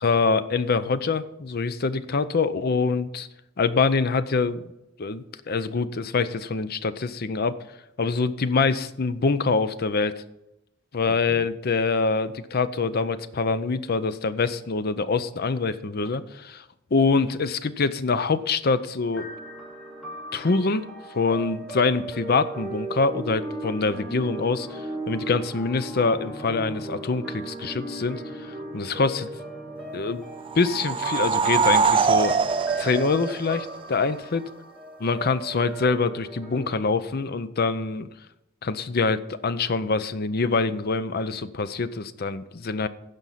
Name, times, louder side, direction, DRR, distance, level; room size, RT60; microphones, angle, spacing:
voice 1, 0.0-3.3 3.6-4.6 5.0-7.5 8.0-10.2 10.9-16.6 16.9-19.3 20.3-20.9 21.1-29.3 29.9-30.2 30.6-32.3 32.8-34.4 35.0-38.1 38.6-42.9, left 4 dB, 50° left, 13 dB, 0.6 m, -25 dB
sound 1, 19.1-36.7, right 2 dB, 5° left, 2.5 m, -37 dB
sound 2, 30.5-34.0, right 5 dB, 25° right, 0.4 m, -23 dB
15.5 x 5.4 x 5.7 m, 0.88 s
head